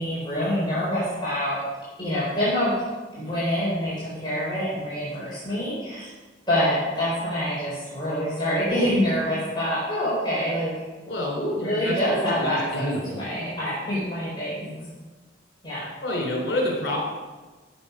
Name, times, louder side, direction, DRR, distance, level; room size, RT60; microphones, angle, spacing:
voice 1, 0.0-1.6 2.0-2.7 3.1-6.1 6.5-10.7 11.0-14.8 15.6-15.9, equal, 25° left, -9 dB, 4.3 m, -26 dB
voice 2, 11.1-11.9 12.2-13.2 16.0-17.0, left 1 dB, 65° left, -1 dB, 4.1 m, -28 dB
16.0 x 7.3 x 5.2 m, 1.3 s
head